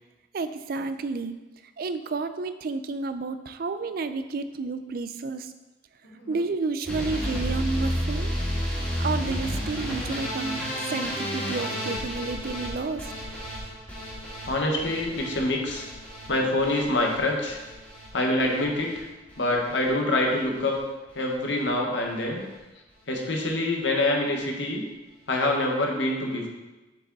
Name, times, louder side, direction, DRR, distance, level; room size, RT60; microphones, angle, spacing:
voice 1, 0.3-1.4 1.8-5.5 6.3-8.4 9.0-10.6 10.9-13.1, right 3 dB, 55° right, 10 dB, 0.4 m, -31 dB
sound 1, 6.9-19.0 19.3-19.9 20.2-20.8 21.1-21.3 21.7-21.8 22.0-22.1, equal, 10° left, 2.2 m, -32 dB
voice 2, 14.5-15.8 16.3-17.6 18.1-19.0 19.4-20.8 21.1-22.4 23.1-24.8 25.3-26.5, left 1 dB, 80° left, 1 dB, 1.3 m, -25 dB
7.6 x 5.0 x 4.0 m, 1.1 s
head